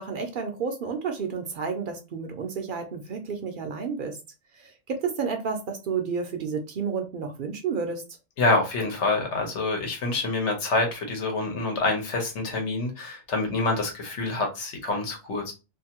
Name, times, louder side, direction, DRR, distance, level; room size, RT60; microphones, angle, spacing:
voice 1, 0.0-4.2 4.5-8.0, right 5 dB, 60° right, 0.6 m, -31 dB
voice 2, 8.4-15.5, left 3 dB, 85° left, 1.2 m, -26 dB
2.6 x 2.5 x 2.8 m
omnidirectional pair, 1.1 m